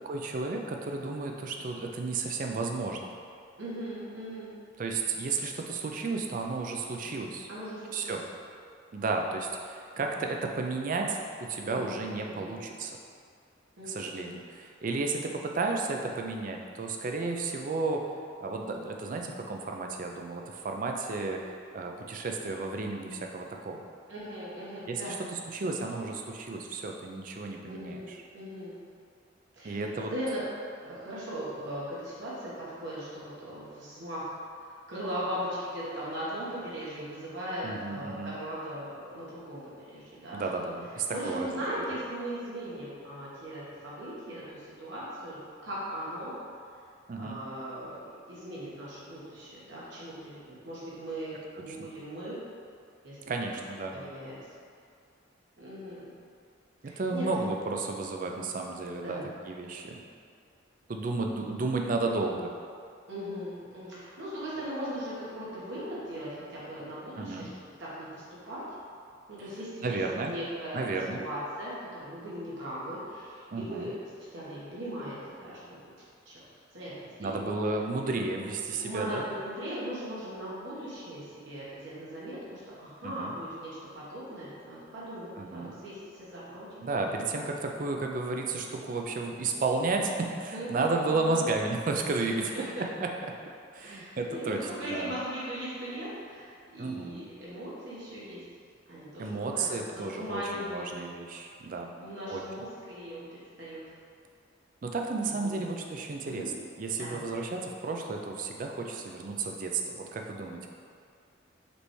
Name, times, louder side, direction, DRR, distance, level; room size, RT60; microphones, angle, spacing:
voice 1, 0.0-3.1 4.8-7.5 7.9-8.2 8.9-13.0 13.8-18.1 18.4-21.4 21.7-23.8 24.9-28.2 29.6-30.1 37.6-38.3 40.3-41.8 47.1-47.4 51.7-51.8 53.3-54.0 56.8-59.2 59.5-60.0 60.9-62.5 67.2-67.5 69.8-70.3 70.7-71.2 73.5-73.9 77.2-79.2 83.0-83.3 85.4-85.7 86.8-92.7 93.0-93.1 93.7-95.1 96.8-97.3 99.2-101.9 102.3-102.4 104.8-106.5 106.8-110.7, right 3 dB, 45° right, 2 dB, 0.4 m, -33 dB
voice 2, 3.6-4.6 7.5-8.2 11.7-12.6 13.8-14.2 24.1-25.2 27.6-28.8 29.5-30.4 30.8-40.7 41.1-46.4 47.2-48.0 48.3-52.4 53.0-53.4 53.9-54.4 55.6-56.1 56.8-57.3 59.0-59.2 63.1-67.5 67.8-68.6 69.3-70.0 70.3-70.9 71.1-75.8 76.2-76.4 76.7-77.4 78.8-83.7 83.9-86.9 90.5-91.5 92.2-92.7 93.8-98.4 98.9-100.9 102.0-103.2 103.6-103.8 105.4-105.6 106.2-106.5 106.9-107.3, equal, 70° right, -9 dB, 1.3 m, -39 dB
5.1 x 3.3 x 3.1 m, 2.3 s
head